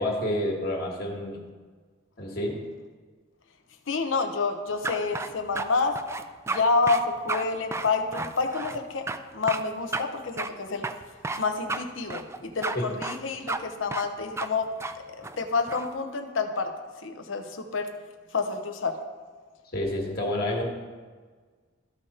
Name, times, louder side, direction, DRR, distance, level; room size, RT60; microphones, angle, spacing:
voice 1, 0.0-1.4 2.2-2.6 12.7-12.8 19.7-20.6, left 1 dB, 50° left, -1 dB, 1.7 m, -29 dB
voice 2, 3.9-6.0 6.5-10.9 11.4-14.7 15.2-16.7 17.0-17.9 18.3-19.0, left 4 dB, 80° left, 6 dB, 0.9 m, -28 dB
sound 1, 4.8-5.7 6.0-6.6 6.9-7.0 7.3-7.5 7.7-8.8 9.1-9.2 9.5-9.6 9.9-10.0 10.4-10.5 10.8-11.4 11.7-11.8 12.1-12.8 13.0-13.2 13.5-13.6 13.9-14.1 14.4-14.5 14.8-14.9 15.2-15.9, right 3 dB, 15° right, 0.3 m, -32 dB
13.5 x 5.0 x 4.3 m, 1.5 s
head